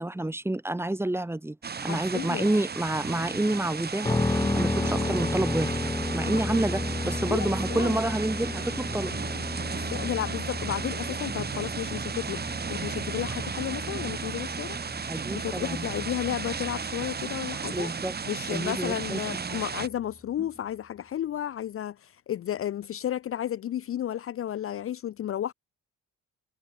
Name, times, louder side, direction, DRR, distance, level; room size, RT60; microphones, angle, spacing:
voice 1, 0.0-1.6 1.8-5.8 6.1-9.1 15.1-15.9 17.7-18.2 18.5-19.6, right 1 dB, 10° right, 1.2 m, -29 dB
sound 1, 1.6-19.9, right 6 dB, 35° right, 1.5 m, -34 dB
voice 2, 1.8-2.5 6.3-6.6 7.3-7.9 9.7-14.8 15.3-17.9 18.3-25.5, left 11 dB, 45° left, 0.5 m, -33 dB
sound 2, 4.0-19.9, left 2 dB, 10° left, 1.3 m, -33 dB
cardioid pair, 90°, 30 cm